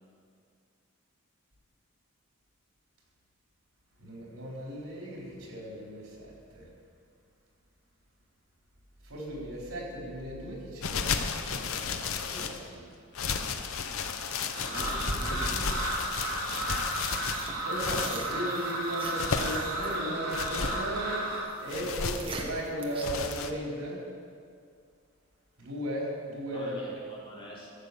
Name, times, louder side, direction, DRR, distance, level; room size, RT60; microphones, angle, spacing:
voice 1, 4.0-6.7 9.0-12.8 17.6-21.2 21.6-24.0 25.6-26.9, right 1 dB, 90° right, -3 dB, 4.0 m, -36 dB
sound 1, 10.8-12.6 13.1-18.2 18.9-19.7 20.3-20.8 21.7-22.3 23.0-23.5, left 5 dB, 80° left, 0.8 m, -33 dB
voice 2, 14.3-16.0 26.5-27.7, equal, 25° left, -4 dB, 2.5 m, -44 dB
sound 2, 14.5-21.4, right 1 dB, 70° right, 3.2 m, -33 dB
sound 3, 14.8-23.1, right 1 dB, 25° right, 1.2 m, -41 dB
15.0 x 8.1 x 6.9 m, 2.3 s
head